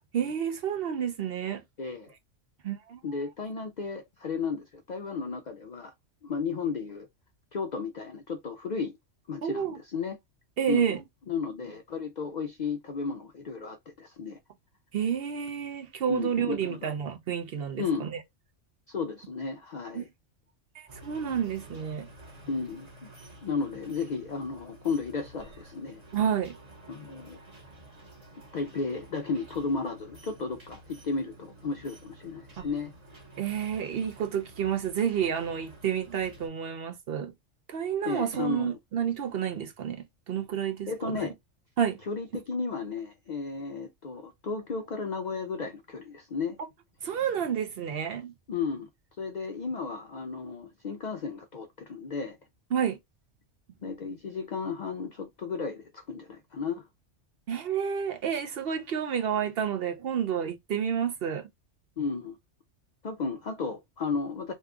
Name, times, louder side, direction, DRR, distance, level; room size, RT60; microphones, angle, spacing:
voice 1, 0.1-1.6 2.6-3.0 9.4-9.8 10.6-11.0 14.9-18.2 19.9-20.1 20.7-22.1 26.1-26.5 32.6-32.7 33.4-37.3 37.7-41.3 41.8-42.0 47.0-48.3 52.7-53.0 57.5-61.5, right 8 dB, 65° right, 0.7 m, -30 dB
voice 2, 1.8-2.1 3.0-5.9 6.2-7.1 7.5-8.9 9.3-10.2 10.7-11.0 11.3-14.4 16.1-16.9 17.8-18.1 18.9-20.1 22.4-23.1 23.4-26.0 26.9-27.4 28.5-32.9 38.0-38.8 40.9-41.3 42.1-46.6 48.5-48.9 49.2-52.4 53.8-56.9 62.0-62.4 63.0-64.5, left 4 dB, 70° left, 0.4 m, -34 dB
sound 1, 20.9-36.5, right 1 dB, 35° right, 1.0 m, -51 dB
2.7 x 2.3 x 3.6 m
omnidirectional pair, 1.3 m